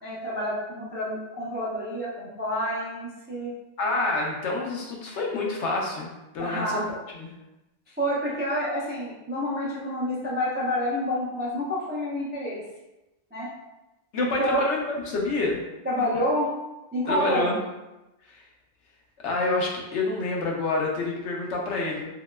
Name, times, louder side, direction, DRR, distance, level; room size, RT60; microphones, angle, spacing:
voice 1, 0.0-3.5 6.4-6.9 8.0-12.6 13.3-13.5 14.2-14.6 15.8-16.5 16.9-17.5, equal, 15° right, -7 dB, 0.4 m, -28 dB
voice 2, 3.8-6.8 7.1-7.3 14.1-15.6 17.1-17.6 18.3-18.4 19.2-22.1, left 3 dB, 75° left, -1 dB, 0.9 m, -28 dB
2.9 x 2.8 x 2.2 m, 0.99 s
omnidirectional pair, 1.2 m